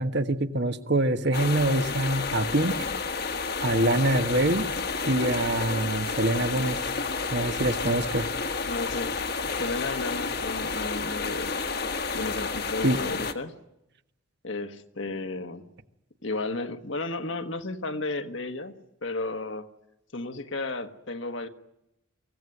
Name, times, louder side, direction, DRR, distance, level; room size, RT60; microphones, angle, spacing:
voice 1, 0.0-2.9 3.6-4.7 5.1-6.8 7.3-8.3 12.8-13.0, right 1 dB, 55° right, 9 dB, 1.3 m, -25 dB
sound 1, 1.3-13.3, left 4 dB, 50° left, 1.5 m, -30 dB
voice 2, 8.6-9.1 9.4-11.5 12.1-13.5 14.4-15.7 16.2-18.7 19.0-19.7 20.1-21.5, left 2 dB, 65° left, 7 dB, 1.5 m, -33 dB
24.0 x 16.0 x 9.8 m, 0.90 s
head